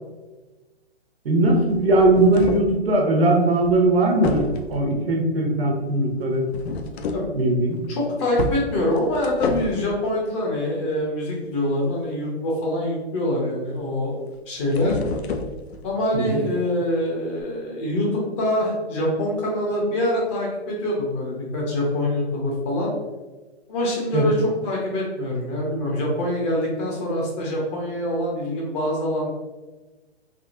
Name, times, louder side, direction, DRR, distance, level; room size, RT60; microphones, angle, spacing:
voice 1, 1.2-6.4 7.4-7.8 16.1-16.4 24.1-24.2, right 2 dB, 65° right, 1 dB, 0.8 m, -19 dB
sound 1, 1.4-2.7 3.6-3.9 4.2-4.9 6.5-7.3 7.7-7.9 8.4-9.9 14.3-15.9 17.4-17.5, left 3 dB, 70° left, 0.5 m, -29 dB
voice 2, 7.9-14.1 14.5-15.0 15.8-22.9 23.7-29.3, left 1 dB, 25° left, -2 dB, 0.7 m, -25 dB
3.5 x 2.1 x 2.5 m, 1.2 s
hypercardioid pair, 135°, 33 cm